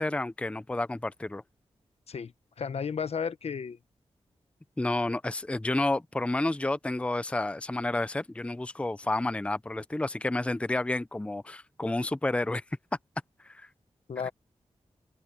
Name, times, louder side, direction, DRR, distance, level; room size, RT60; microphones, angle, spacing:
voice 1, 0.0-1.4 4.8-12.6 13.4-13.7 14.2-14.3, left 2 dB, 10° left, 0.5 m, -30 dB
voice 2, 2.1-3.8 14.1-14.3, left 6 dB, 70° left, 0.9 m, -33 dB
open air
wide cardioid pair, 95°, 11 cm